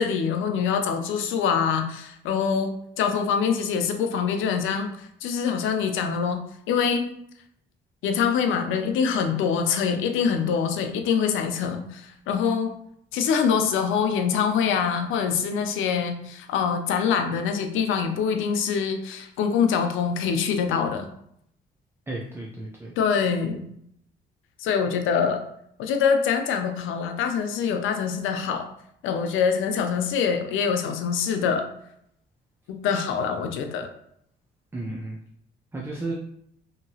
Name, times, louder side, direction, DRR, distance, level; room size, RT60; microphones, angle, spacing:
voice 1, 0.0-6.4 6.7-7.1 8.0-12.8 13.1-21.1 23.0-23.6 24.6-25.4 25.8-28.7 29.0-31.7 32.7-33.9, left 6 dB, 90° left, 6 dB, 0.5 m, -24 dB
voice 2, 22.1-22.9 34.7-35.2 35.7-36.1, right 2 dB, 10° right, -2 dB, 0.5 m, -33 dB
2.9 x 2.7 x 2.7 m, 0.71 s
cardioid pair, 90°, 20 cm